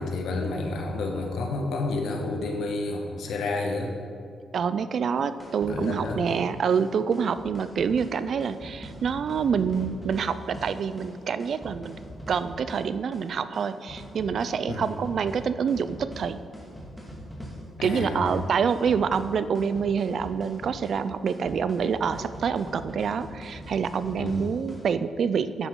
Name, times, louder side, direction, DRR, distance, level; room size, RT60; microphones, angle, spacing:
voice 1, 0.0-3.9 5.7-6.2 14.7-14.8 17.8-18.3 24.2-24.4, left 3 dB, 80° left, 2 dB, 1.3 m, -30 dB
voice 2, 4.5-12.0 12.3-16.4 17.8-25.7, right 6 dB, 60° right, 13 dB, 0.4 m, -27 dB
sound 1, 5.2-24.9, equal, 5° left, 2.1 m, -42 dB
10.0 x 7.9 x 3.8 m, 2.2 s
cardioid pair, 90°, 0 cm